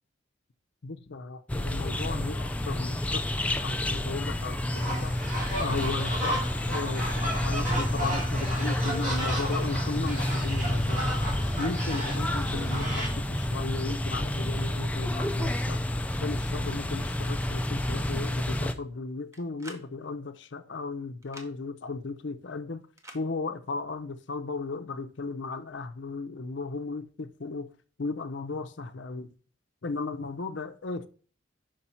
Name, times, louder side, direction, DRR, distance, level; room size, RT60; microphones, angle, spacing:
voice 1, 0.8-3.2 3.6-5.1 5.6-11.2 11.6-15.8 16.2-22.8 23.1-27.7 28.0-29.3 29.8-31.1, left 3 dB, 60° left, 0.6 m, -35 dB
sound 1, 1.5-18.7, left 1 dB, 5° left, 0.3 m, -29 dB
sound 2, 4.7-13.1, right 1 dB, 40° right, 2.5 m, -34 dB
sound 3, 19.3-19.9 21.2-21.5 23.0-23.2, right 1 dB, 15° right, 0.8 m, -46 dB
5.4 x 5.2 x 4.3 m
head